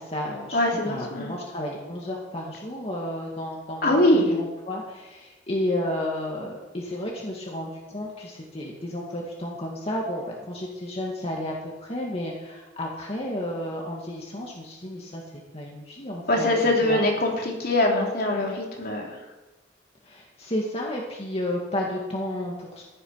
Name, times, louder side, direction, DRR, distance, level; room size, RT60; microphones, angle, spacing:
voice 1, 0.0-15.2 15.5-17.0 20.0-22.8, left 1 dB, 35° left, -2 dB, 2.2 m, -32 dB
voice 2, 0.5-1.3 3.8-4.3 16.3-19.0, left 1 dB, 60° left, -1 dB, 3.4 m, -22 dB
15.0 x 11.5 x 5.8 m, 1.1 s
head